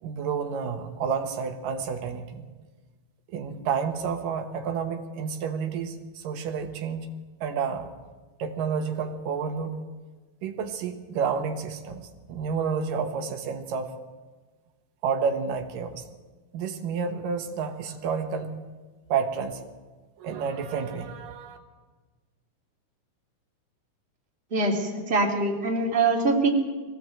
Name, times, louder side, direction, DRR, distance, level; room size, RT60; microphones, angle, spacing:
voice 1, 0.0-2.5 3.3-7.1 7.4-7.9 8.4-9.8 10.4-14.0 15.0-16.0 16.5-18.6 19.1-19.6 20.2-21.6, right 6 dB, 90° right, 5 dB, 3.1 m, -30 dB
voice 2, 24.5-26.5, right 3 dB, 20° right, -1 dB, 2.8 m, -23 dB
22.5 x 17.0 x 7.8 m, 1.3 s
omnidirectional pair, 3.8 m